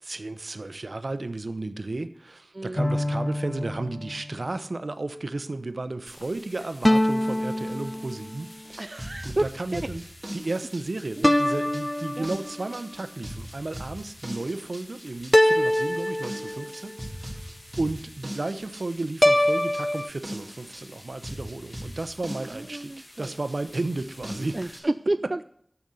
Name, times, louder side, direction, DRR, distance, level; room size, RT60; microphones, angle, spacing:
voice 1, 0.0-8.9 9.2-10.0 10.3-24.6, right 2 dB, 80° right, 11 dB, 0.7 m, -33 dB
sound 1, 2.8-4.4 6.8-8.5 11.2-12.7 15.3-16.9 19.2-20.1, left 1 dB, 25° left, 0.4 m, -24 dB
sound 2, 6.1-24.8, left 1 dB, 45° left, 2.0 m, -50 dB
sound 3, 8.7-24.8, equal, 25° right, 2.9 m, -40 dB
voice 2, 8.8-9.9 12.2-12.3 22.4-23.4 24.5-25.4, right 2 dB, 50° right, 11 dB, 0.3 m, -30 dB
10.5 x 7.0 x 6.4 m, 0.68 s
wide cardioid pair, 50°, 0 cm